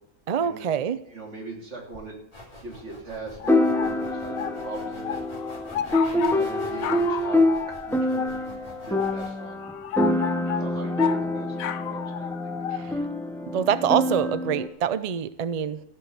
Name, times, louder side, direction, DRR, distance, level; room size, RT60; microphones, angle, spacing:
voice 1, 0.3-1.0 12.7-12.9 13.5-15.8, right 8 dB, 75° right, 13 dB, 0.3 m, -25 dB
voice 2, 1.0-2.2 2.6-5.2 5.9-9.6 10.0-12.3, right 2 dB, 55° right, -2 dB, 3.4 m, -40 dB
sound 1, 1.9-2.0 3.5-14.7, left 1 dB, 5° left, 0.4 m, -26 dB
sound 2, 2.3-9.3, left 1 dB, 25° left, 2.8 m, -45 dB
sound 3, 3.4-12.9, left 10 dB, 80° left, 1.1 m, -33 dB
14.5 x 6.1 x 8.1 m, 0.77 s
omnidirectional pair, 1.5 m